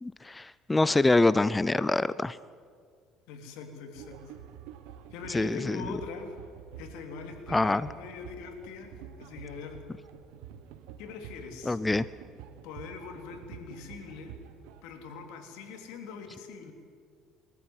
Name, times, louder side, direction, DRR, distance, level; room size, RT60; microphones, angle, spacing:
voice 1, 0.0-2.4 5.3-5.8 7.5-7.8 11.7-12.0, left 2 dB, 15° left, 17 dB, 0.5 m, -25 dB
voice 2, 3.3-4.4 5.1-6.3 6.8-8.9 9.2-9.9 11.0-11.8 12.6-14.3 14.8-16.7, left 5 dB, 85° left, 4 dB, 3.2 m, -42 dB
sound 1, 3.9-14.8, right 9 dB, 85° right, 1.3 m, -48 dB
22.5 x 14.0 x 9.7 m, 2.1 s
cardioid pair, 115°, 0 cm